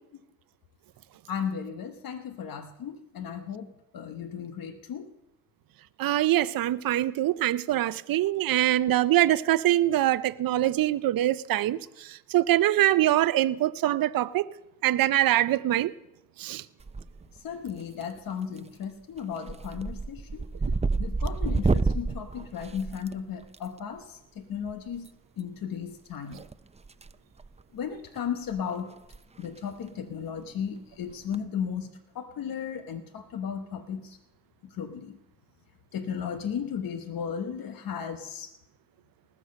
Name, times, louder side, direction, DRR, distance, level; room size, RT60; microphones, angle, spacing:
voice 1, 1.3-5.1 17.4-20.4 21.0-25.1 25.4-26.4 27.7-28.9 29.4-34.2 34.7-35.2 35.9-38.5, left 7 dB, 85° left, 1.0 m, -35 dB
voice 2, 6.0-11.8 12.3-14.5 14.8-15.9 16.4-16.6, right 14 dB, 85° right, 0.5 m, -23 dB
sound 1, 16.8-17.4 17.7-18.2 18.6-18.8 19.2-23.6 24.9-25.1 26.3-27.1 27.4-27.6 28.2-28.3 28.5-28.6 29.0-29.2 29.4-29.5 31.1-31.4, right 3 dB, 20° right, 0.6 m, -29 dB
19.5 x 6.5 x 6.4 m
supercardioid pair, 40°, 34 cm